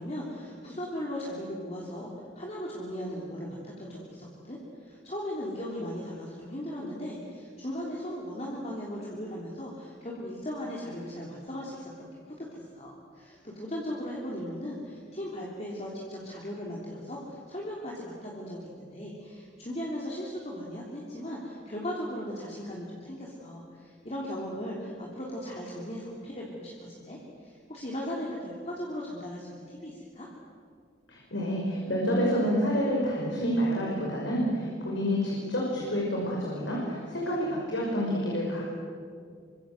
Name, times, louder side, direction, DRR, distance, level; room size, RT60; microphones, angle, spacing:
voice 1, 0.0-12.1 12.4-30.3, equal, 35° left, -4 dB, 3.5 m, -37 dB
voice 2, 31.1-38.6, equal, 80° left, -3 dB, 5.5 m, -28 dB
27.0 x 24.5 x 7.9 m, 2.2 s
head